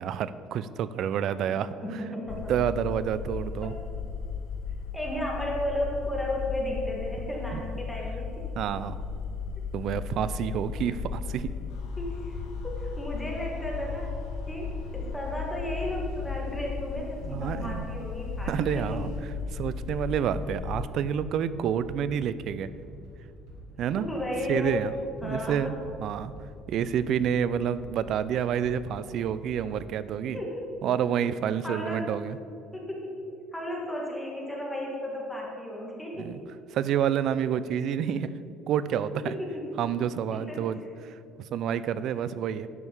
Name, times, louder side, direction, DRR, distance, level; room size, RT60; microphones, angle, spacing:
voice 1, 0.0-2.0 2.5-3.7 7.5-7.6 8.6-9.0 9.7-11.5 17.2-17.8 18.4-19.1 19.5-22.7 23.8-24.1 24.5-24.9 25.2-25.7 26.0-26.3 26.7-30.4 30.8-32.4 36.2-36.4 36.7-38.3 38.7-39.3 39.8-42.7, right 9 dB, 55° right, 15 dB, 0.5 m, -29 dB
voice 2, 1.8-2.5 4.9-8.4 12.0-12.4 12.6-14.1 14.5-19.0 24.0-24.8 25.2-25.8 30.3-30.9 31.6-32.1 32.7-33.1 33.5-36.3 39.2-39.7 40.3-40.6, left 1 dB, 5° left, -2 dB, 2.0 m, -34 dB
sound 1, 2.3-20.9, left 5 dB, 60° left, 0.5 m, -36 dB
sound 2, 11.7-19.2, left 3 dB, 85° left, 1.8 m, -48 dB
sound 3, 12.0-30.3, right 1 dB, 85° right, 2.0 m, -48 dB
11.0 x 5.6 x 8.0 m, 2.4 s
cardioid pair, 140°, 0 cm